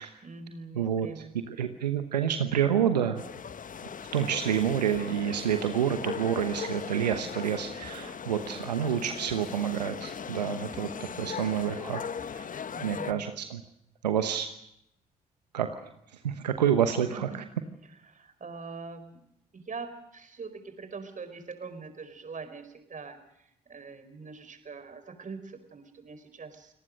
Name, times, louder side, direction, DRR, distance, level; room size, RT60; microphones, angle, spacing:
voice 1, 0.2-1.3 12.7-13.3 17.1-17.4 18.0-19.2 19.5-26.7, right 4 dB, 40° right, 9 dB, 4.6 m, -43 dB
voice 2, 0.7-1.1 1.5-3.2 4.1-12.0 12.3-12.5 12.8-13.6 14.0-14.5 15.5-15.9 16.2-17.3, right 9 dB, 90° right, 8 dB, 1.0 m, -28 dB
sound 1, 3.2-13.1, left 7 dB, 40° left, 1.1 m, -39 dB
29.5 x 18.5 x 6.5 m, 0.78 s
hypercardioid pair, 45°, 20 cm